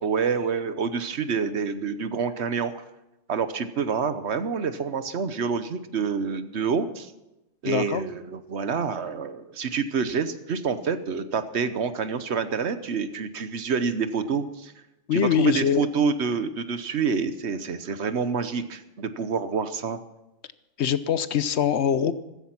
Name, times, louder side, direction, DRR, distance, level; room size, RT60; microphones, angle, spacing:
voice 1, 0.0-2.8 3.3-7.1 7.6-14.7 15.1-20.0, right 5 dB, 65° right, 11 dB, 1.2 m, -27 dB
voice 2, 7.6-8.0 15.1-15.9 20.8-22.1, left 8 dB, 65° left, 14 dB, 1.0 m, -23 dB
14.5 x 14.5 x 5.9 m, 0.96 s
omnidirectional pair, 1.3 m